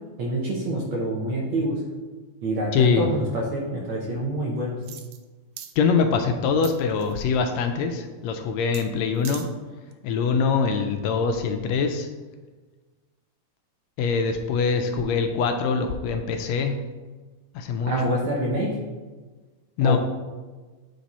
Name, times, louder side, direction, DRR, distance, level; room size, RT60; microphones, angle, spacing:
voice 1, 0.2-1.8 2.4-4.8 17.9-18.8 19.8-20.0, right 1 dB, 65° right, -3 dB, 1.3 m, -26 dB
voice 2, 2.7-3.1 5.8-9.5 10.0-12.1 14.0-16.8 17.5-18.2 19.8-20.0, left 5 dB, 80° left, 6 dB, 1.7 m, -23 dB
sound 1, 4.8-5.2 5.6-5.7 6.6-7.2 8.7-8.9 9.2-9.5 9.9-10.0, right 10 dB, 85° right, 1.4 m, -40 dB
8.7 x 3.4 x 4.1 m, 1.3 s
omnidirectional pair, 3.3 m